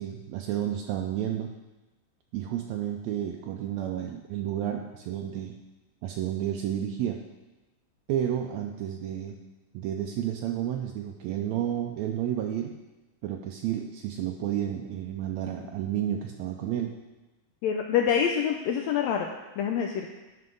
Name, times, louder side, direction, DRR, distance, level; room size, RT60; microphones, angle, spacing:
voice 1, 0.0-1.5 2.3-5.6 6.0-7.2 8.1-9.4 9.7-12.7 13.2-17.0, right 10 dB, 85° right, 2 dB, 1.6 m, -31 dB
voice 2, 17.6-19.3 19.6-20.1, left 8 dB, 85° left, 2 dB, 1.5 m, -26 dB
11.0 x 5.6 x 3.8 m, 1.1 s
omnidirectional pair, 3.6 m